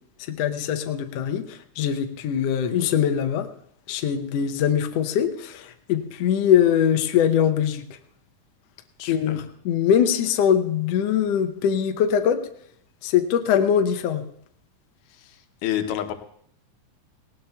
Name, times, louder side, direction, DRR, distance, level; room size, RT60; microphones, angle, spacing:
voice 1, 0.3-3.5 3.9-7.8 9.1-9.4 9.6-12.4 13.0-14.2, left 9 dB, 75° left, 6 dB, 1.6 m, -22 dB
voice 2, 9.0-9.5 15.1-16.1, left 11 dB, 90° left, 7 dB, 2.5 m, -30 dB
18.5 x 18.0 x 2.3 m, 0.67 s
omnidirectional pair, 3.6 m